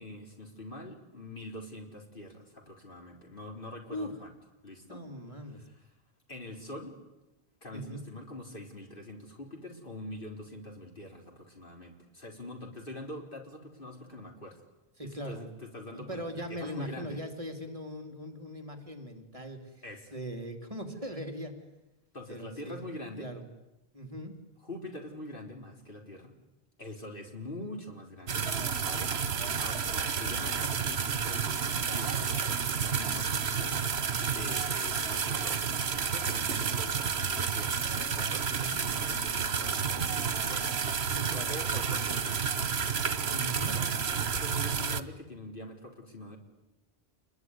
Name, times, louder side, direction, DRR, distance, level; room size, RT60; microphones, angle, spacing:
voice 1, 0.0-4.3 4.6-5.0 5.5-5.8 6.3-7.0 7.6-14.6 15.0-17.2 19.8-20.1 22.1-23.3 24.6-26.4 26.8-28.5 28.8-35.6 35.9-42.7 43.5-43.9 44.3-46.4, left 1 dB, 55° left, 2 dB, 4.2 m, -44 dB
voice 2, 4.9-5.6 7.7-8.0 15.0-15.4 15.9-19.6 20.1-21.5 22.3-22.8 23.2-23.4 23.9-24.3 38.5-38.8 41.1-41.6 43.2-43.8, equal, 35° right, 5 dB, 3.1 m, -40 dB
sound 1, 28.3-45.0, right 6 dB, 80° right, 1.4 m, -30 dB
28.0 x 22.0 x 9.6 m, 0.98 s
omnidirectional pair, 1.1 m